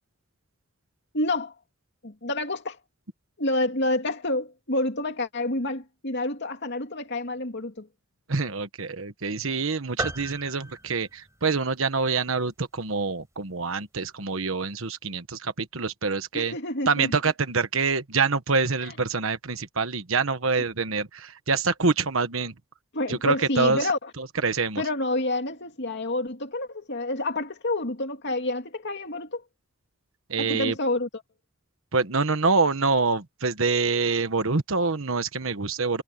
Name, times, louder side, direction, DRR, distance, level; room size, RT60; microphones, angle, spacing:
voice 1, 1.1-1.5 2.0-2.8 3.4-7.9 16.3-17.1 18.8-18.9 22.9-24.1 24.8-29.4 30.4-31.1, left 2 dB, 55° left, 2.7 m, -28 dB
voice 2, 8.3-16.5 16.9-22.5 23.1-23.9 24.2-24.8 30.3-30.7 31.9-36.0, right 4 dB, 70° right, 1.3 m, -26 dB
sound 1, 10.0-11.8, right 1 dB, 15° right, 6.0 m, -35 dB
head